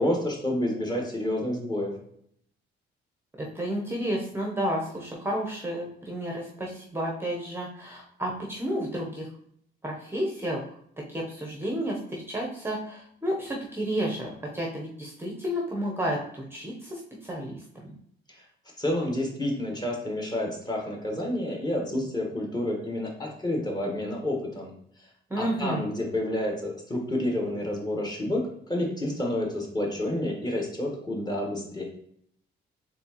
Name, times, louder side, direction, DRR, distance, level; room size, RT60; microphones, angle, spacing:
voice 1, 0.0-1.9 18.4-18.5 18.8-24.7 25.4-31.8, left 1 dB, 20° left, -1 dB, 1.3 m, -29 dB
voice 2, 3.4-9.3 9.8-10.6 11.1-17.9 25.3-25.8, equal, 10° right, -1 dB, 0.8 m, -31 dB
4.3 x 3.4 x 2.9 m, 0.68 s
cardioid pair, 90°, 20 cm